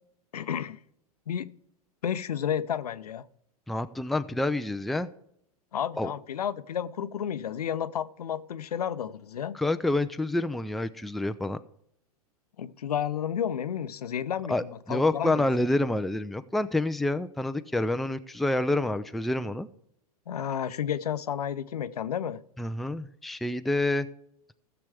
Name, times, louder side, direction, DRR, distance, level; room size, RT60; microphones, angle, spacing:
voice 1, 0.3-0.8 1.3-1.5 2.0-3.2 5.7-9.6 12.6-15.5 20.3-22.4, left 9 dB, 80° left, 0.6 m, -31 dB
voice 2, 3.7-5.1 6.0-6.1 9.5-11.6 14.5-19.7 22.6-24.1, left 2 dB, ahead, 0.4 m, -28 dB
16.0 x 6.9 x 3.5 m
hypercardioid pair, 100°, 19 cm